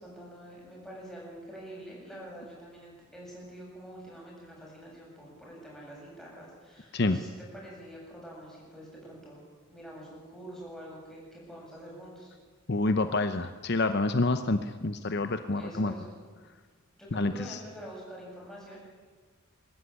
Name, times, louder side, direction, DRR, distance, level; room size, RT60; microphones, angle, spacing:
voice 1, 0.0-9.4 9.7-12.3 15.5-16.2 17.0-18.8, equal, ahead, -4 dB, 7.9 m, -46 dB
voice 2, 12.7-15.9 17.1-17.6, left 2 dB, 50° left, 9 dB, 0.8 m, -28 dB
23.0 x 13.5 x 9.9 m, 1.5 s
head